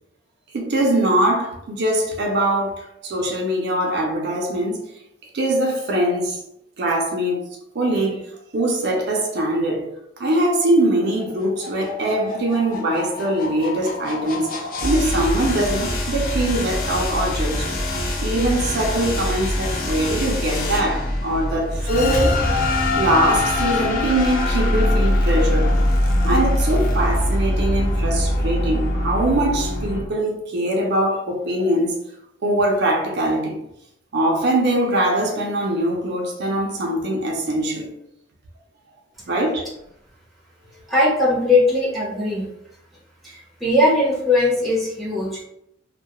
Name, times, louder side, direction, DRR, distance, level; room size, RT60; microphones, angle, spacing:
voice 1, 0.5-4.8 5.2-6.4 6.8-7.5 7.7-9.9 10.2-14.5 14.8-17.7 18.2-22.4 22.9-25.7 26.2-32.0 32.4-33.6 34.1-37.9 39.3-39.7, right 1 dB, 60° right, 0.5 m, -22 dB
sound 1, 11.2-30.0, left 1 dB, 45° left, 0.4 m, -23 dB
voice 2, 40.9-42.5 43.2-45.4, left 2 dB, ahead, 0.7 m, -19 dB
2.2 x 2.1 x 2.8 m
head